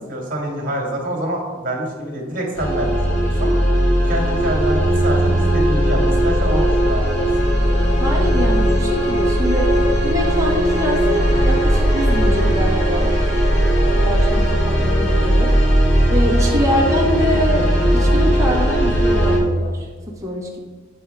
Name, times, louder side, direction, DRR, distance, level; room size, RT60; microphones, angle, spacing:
voice 1, 0.1-3.6 4.0-7.8 13.8-14.1 16.3-16.6, equal, 45° right, 0 dB, 1.9 m, -26 dB
sound 1, 2.5-19.4, equal, 60° left, 2.2 m, -17 dB
voice 2, 8.0-9.7 10.0-13.1 13.9-15.5 16.1-17.7 17.9-20.6, equal, 15° right, -3 dB, 1.4 m, -24 dB
9.9 x 4.9 x 3.3 m, 1.4 s
head